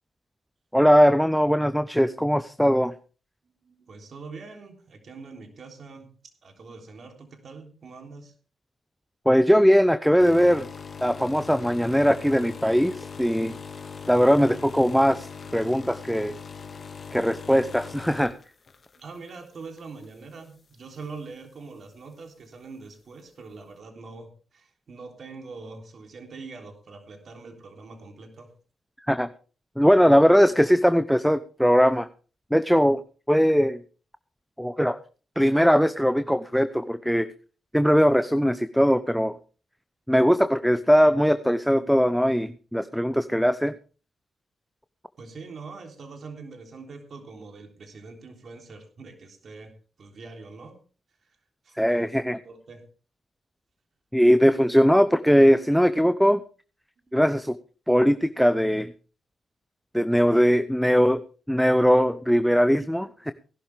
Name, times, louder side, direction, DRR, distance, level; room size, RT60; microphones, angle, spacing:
voice 1, 0.7-2.9 9.3-10.7 11.0-13.6 14.1-15.3 15.5-16.4 17.1-18.3 29.1-29.3 29.8-32.1 32.5-33.0 33.3-33.8 34.6-35.0 35.4-37.3 37.7-39.4 40.1-43.7 51.8-52.4 54.1-56.4 57.1-57.6 57.9-58.9 59.9-61.2 61.5-63.3, equal, ahead, 11 dB, 0.8 m, -20 dB
voice 2, 3.6-6.1 6.4-8.3 18.9-28.5 45.2-49.7 50.0-50.8 51.6-52.1 52.4-52.9 57.1-57.2, right 4 dB, 60° right, 4 dB, 3.4 m, -43 dB
sound 1, 10.2-19.4 19.8-20.0 20.9-21.0, left 5 dB, 50° left, 1.9 m, -40 dB
18.0 x 12.0 x 3.5 m, 0.37 s
hypercardioid pair, 40°, 0 cm